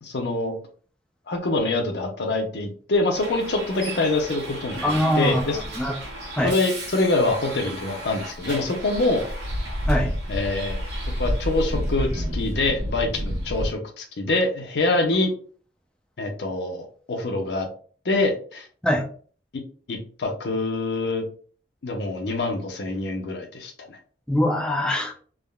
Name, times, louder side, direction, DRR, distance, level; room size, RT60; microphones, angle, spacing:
voice 1, 0.0-0.5 1.3-5.6 6.4-9.3 10.3-10.8 11.2-15.3 16.2-17.7 18.0-18.7 19.5-19.6 19.9-21.2 21.8-24.0, left 2 dB, 70° left, 4 dB, 0.6 m, -25 dB
Bus, 3.1-13.7, equal, 75° right, 1.2 m, -30 dB
voice 2, 4.8-6.0 6.3-6.5 9.9-10.1 18.8-19.1 24.3-25.1, left 1 dB, 5° left, 2 dB, 0.3 m, -23 dB
3.5 x 2.1 x 2.2 m, 0.43 s
head